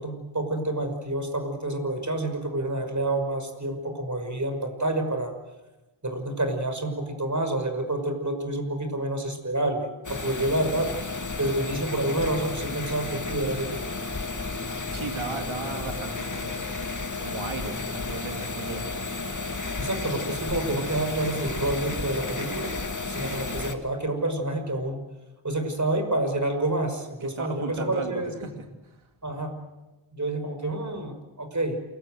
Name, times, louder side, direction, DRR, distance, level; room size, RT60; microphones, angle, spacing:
voice 1, 0.0-5.3 6.0-10.9 11.4-13.8 19.8-22.7 23.1-25.0 25.4-28.3 29.2-29.5 30.1-31.8, right 1 dB, 35° right, 6 dB, 5.7 m, -28 dB
sound 1, 10.0-23.7, left 3 dB, 40° left, 2.3 m, -32 dB
voice 2, 14.9-16.6 17.2-18.8 27.2-28.5, right 4 dB, 75° right, 4 dB, 2.8 m, -36 dB
28.5 x 22.0 x 7.8 m, 1.1 s
wide cardioid pair, 70°, 48 cm